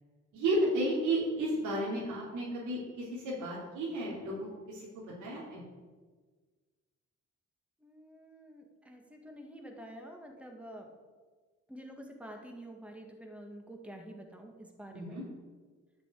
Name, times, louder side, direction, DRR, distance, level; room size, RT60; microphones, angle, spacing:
voice 1, 0.3-5.6 14.9-15.2, right 1 dB, 90° right, -6 dB, 3.0 m, -33 dB
voice 2, 7.8-10.9 11.7-15.2, right 1 dB, 5° right, 2 dB, 1.8 m, -48 dB
10.5 x 5.5 x 8.4 m, 1.4 s
cardioid pair, 90°, 30 cm